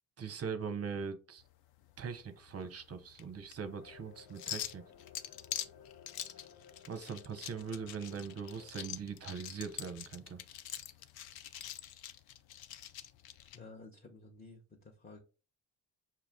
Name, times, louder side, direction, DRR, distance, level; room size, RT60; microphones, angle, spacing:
voice 1, 0.2-1.4 2.0-4.8 6.9-10.4, right 6 dB, 30° right, 0.7 m, -41 dB
sound 1, 1.4-13.6, left 11 dB, 50° left, 0.5 m, -46 dB
sound 2, 3.7-8.7, left 7 dB, 75° left, 1.0 m, -58 dB
voice 2, 13.5-15.2, left 3 dB, 20° left, 0.9 m, -53 dB
5.8 x 2.4 x 3.5 m
hypercardioid pair, 50°, 49 cm